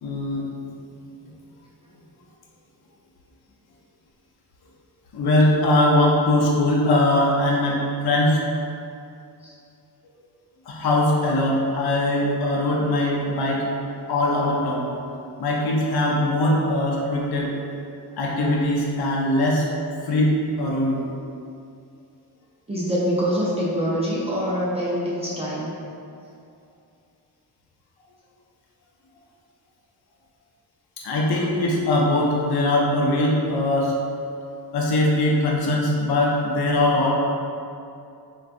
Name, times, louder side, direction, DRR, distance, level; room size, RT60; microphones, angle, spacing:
voice 1, 0.0-0.4 5.1-8.4 10.7-13.7 14.0-14.9 15.4-17.5 18.2-19.7 20.1-21.0 31.0-33.9 34.7-37.1, left 1 dB, 65° left, -3 dB, 0.6 m, -21 dB
voice 2, 22.7-25.7, equal, 15° right, -9 dB, 0.4 m, -25 dB
3.6 x 2.2 x 2.5 m, 2.5 s
cardioid pair, 100°, 41 cm